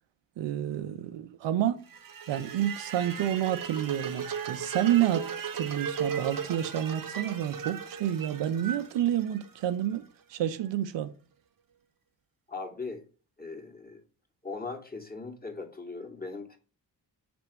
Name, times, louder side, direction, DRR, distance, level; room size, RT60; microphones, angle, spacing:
voice 1, 0.4-1.8 2.3-5.3 5.5-10.0 10.3-11.1, right 11 dB, 60° right, 0.8 m, -29 dB
sound 1, 1.9-10.0, right 7 dB, 45° right, 1.1 m, -37 dB
voice 2, 12.5-13.0 13.4-14.0 14.4-16.6, left 3 dB, 20° left, 2.1 m, -39 dB
5.9 x 3.4 x 5.3 m
hypercardioid pair, 45°, 48 cm